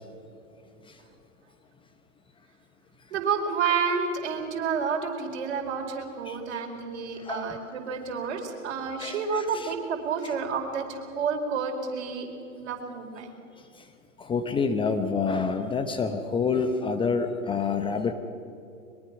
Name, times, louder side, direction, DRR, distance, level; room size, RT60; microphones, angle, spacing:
voice 1, 3.1-12.3 12.6-13.3, right 6 dB, 55° right, 2 dB, 4.6 m, -30 dB
voice 2, 7.2-7.6 9.0-9.7 14.2-18.1, left 5 dB, 15° left, 7 dB, 0.9 m, -27 dB
23.0 x 22.5 x 6.1 m, 2.7 s
hypercardioid pair, 115°, 40 cm